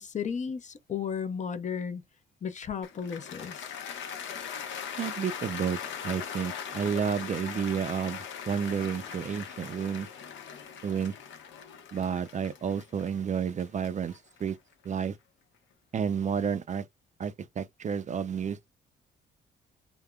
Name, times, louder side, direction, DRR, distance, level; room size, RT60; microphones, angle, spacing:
voice 1, 0.0-2.0 2.4-3.7, left 7 dB, 40° left, 0.5 m, -34 dB
Cheering / Applause, 2.8-15.1, left 7 dB, 70° left, 0.7 m, -40 dB
voice 2, 5.0-10.1 10.8-11.1 11.9-14.6 14.8-15.2 15.9-16.9 17.2-18.7, right 7 dB, 40° right, 0.4 m, -31 dB
3.5 x 2.0 x 2.2 m
cardioid pair, 90°, 20 cm